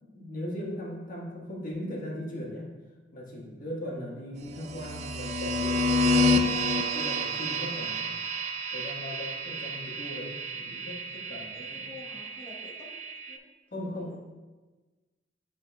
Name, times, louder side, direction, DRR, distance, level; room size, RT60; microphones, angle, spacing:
voice 1, 0.0-2.7 3.1-6.7 6.9-8.3 8.7-11.9 13.7-14.2, left 1 dB, 50° left, -3 dB, 1.4 m, -39 dB
sound 1, 4.6-13.4, left 1 dB, 40° right, 0.4 m, -29 dB
voice 2, 11.5-12.9 13.3-13.5 13.8-14.2, left 3 dB, 10° left, -6 dB, 0.9 m, -49 dB
10.5 x 4.1 x 2.2 m, 1.2 s
head